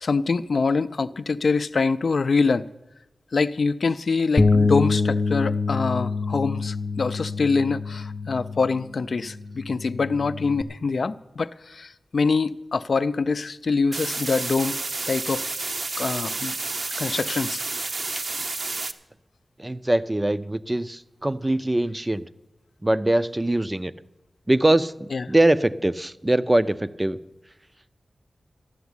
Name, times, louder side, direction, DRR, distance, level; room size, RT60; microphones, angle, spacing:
voice 1, 0.0-2.7 3.3-14.8 15.1-15.4 16.0-16.5 17.0-17.6 25.1-25.2, left 4 dB, 65° left, 0.4 m, -24 dB
Bass guitar, 4.4-10.6, left 3 dB, 35° left, 0.7 m, -25 dB
sound 1, 13.9-18.9, right 3 dB, 55° right, 0.8 m, -30 dB
voice 2, 19.6-22.2 22.8-23.9 24.5-27.2, right 1 dB, 15° right, 0.5 m, -22 dB
13.5 x 7.1 x 9.6 m
wide cardioid pair, 100°, 0 cm